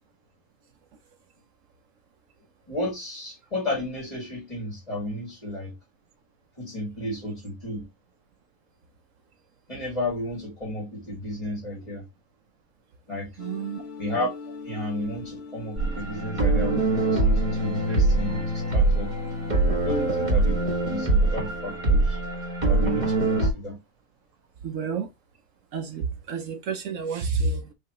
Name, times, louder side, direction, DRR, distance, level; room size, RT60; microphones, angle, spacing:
voice 1, 2.7-5.8 6.6-7.9 9.7-12.1 13.1-13.3 14.0-14.3 14.6-19.1 19.8-20.6 20.9-22.2 22.7-23.8, left 1 dB, 25° left, 1.8 m, -32 dB
sound 1, 13.4-22.4, left 3 dB, 50° left, 1.1 m, -43 dB
voice 2, 13.4-13.8 24.6-25.1 25.7-27.7, right 4 dB, 65° right, 1.0 m, -29 dB
sound 2, 15.8-23.5, right 2 dB, 35° right, 1.4 m, -23 dB
4.6 x 3.3 x 2.9 m
omnidirectional pair, 1.5 m